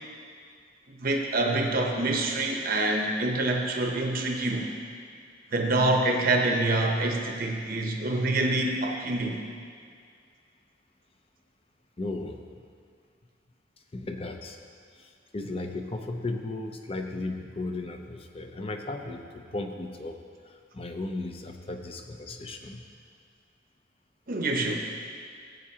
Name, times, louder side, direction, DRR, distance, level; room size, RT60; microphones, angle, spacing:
voice 1, 0.9-4.6 5.5-9.4 24.3-24.8, right 2 dB, 50° right, 1 dB, 0.8 m, -26 dB
voice 2, 12.0-12.4 13.9-14.6 15.0-20.2 20.4-22.8, left 2 dB, 30° left, 5 dB, 0.6 m, -35 dB
15.0 x 8.2 x 2.9 m, 2.2 s
head